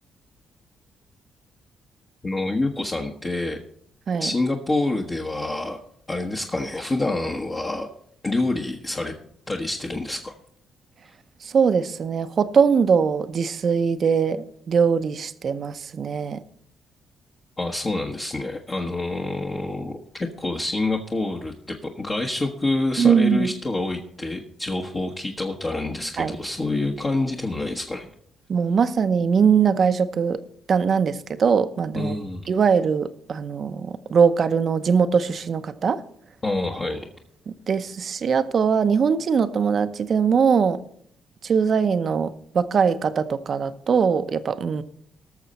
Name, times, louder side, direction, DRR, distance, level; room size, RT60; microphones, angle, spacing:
voice 1, 2.2-3.6 4.2-5.8 6.1-7.9 8.2-9.1 9.5-10.3 17.6-20.0 20.4-28.1 31.9-32.5 36.4-37.0, left 2 dB, 30° left, 1.2 m, -27 dB
voice 2, 11.4-16.4 23.0-23.5 26.2-26.3 28.5-30.4 30.7-32.1 32.5-36.0 37.5-40.8 41.4-44.8, right 6 dB, 50° right, 0.8 m, -21 dB
19.0 x 6.6 x 4.2 m
cardioid pair, 90°, 0 cm